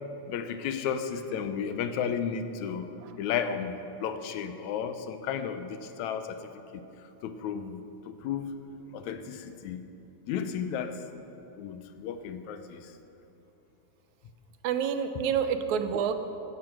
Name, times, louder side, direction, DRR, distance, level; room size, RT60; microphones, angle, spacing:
voice 1, 0.3-2.9 3.2-3.7 4.0-6.4 6.7-6.8 7.2-7.8 8.2-8.5 8.9-9.8 10.3-11.0 11.6-12.8, left 7 dB, 80° left, 9 dB, 2.1 m, -33 dB
voice 2, 14.6-16.1, right 7 dB, 80° right, 9 dB, 2.1 m, -28 dB
15.5 x 11.5 x 6.0 m, 2.9 s
omnidirectional pair, 3.4 m